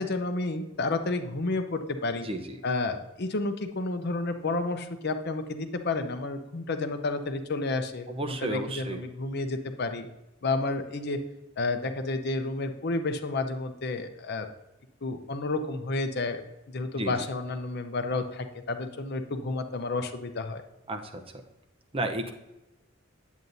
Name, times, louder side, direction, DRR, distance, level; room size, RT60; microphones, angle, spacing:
voice 1, 0.0-2.3 2.6-10.1 10.4-11.2 11.6-14.5 15.0-16.4 16.7-20.6, left 3 dB, 55° left, 7 dB, 0.7 m, -31 dB
voice 2, 2.2-2.6 8.1-9.0 17.0-17.1 20.9-21.2 21.9-22.3, right 1 dB, 30° right, 5 dB, 0.7 m, -32 dB
9.1 x 8.2 x 2.7 m, 0.98 s
head